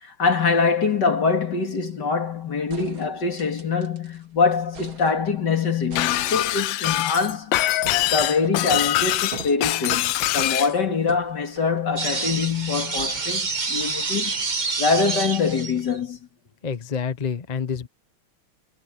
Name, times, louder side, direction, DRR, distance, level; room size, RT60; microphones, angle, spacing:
voice 1, 0.0-7.5 8.1-14.3 14.8-16.2, left 5 dB, 55° left, 2.9 m, -24 dB
sound 1, 2.2-2.3 2.7-4.2 4.5-5.5 5.9-12.4 13.0-13.8 14.3-14.4 14.7-14.8, right 5 dB, 75° right, 3.5 m, -43 dB
Shatter, 6.0-10.7, left 15 dB, 75° left, 1.3 m, -23 dB
sound 2, 12.0-16.0, right 4 dB, 25° right, 1.2 m, -27 dB
voice 2, 16.6-17.9, left 6 dB, 35° left, 0.6 m, -28 dB
omnidirectional pair, 2.2 m